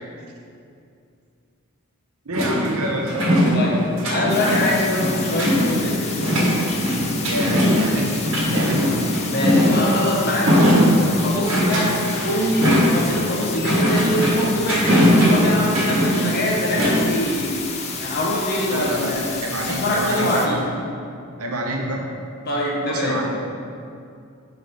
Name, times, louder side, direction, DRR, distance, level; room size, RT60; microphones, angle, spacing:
voice 1, 2.2-3.2 7.2-8.1 8.5-9.0 18.7-19.1 19.4-20.6 21.4-22.0 22.9-23.3, right 1 dB, 75° right, 0 dB, 0.9 m, -27 dB
sound 1, 2.3-17.1, equal, 60° right, 1.2 m, -20 dB
voice 2, 4.1-6.2 9.3-17.5 18.0-19.3 19.6-20.6 22.5-23.2, left 1 dB, 45° left, -3 dB, 1.1 m, -24 dB
sound 2, 4.3-20.5, left 5 dB, 30° left, 0.5 m, -32 dB
5.4 x 4.0 x 5.2 m, 2.4 s
head